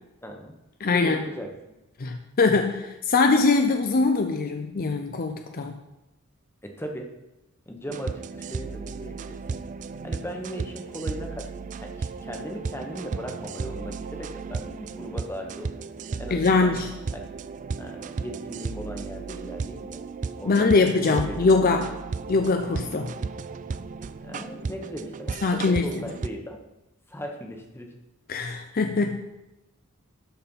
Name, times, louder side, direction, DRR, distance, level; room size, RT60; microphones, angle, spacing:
voice 1, 0.2-0.5 0.9-1.5 6.6-7.1 7.6-9.6 10.0-15.8 16.2-16.7 17.1-17.2 17.8-20.0 20.4-20.8 21.1-21.2 24.2-26.6 27.1-27.9, equal, 10° left, 3 dB, 1.1 m, -38 dB
voice 2, 0.8-1.2 2.0-5.8 16.3-16.9 20.4-21.9 22.3-23.1 25.4-25.9 28.3-29.2, left 3 dB, 40° left, 5 dB, 0.5 m, -22 dB
sound 1, 7.9-26.3, right 4 dB, 35° right, 0.3 m, -35 dB
12.0 x 4.3 x 5.5 m, 0.98 s
head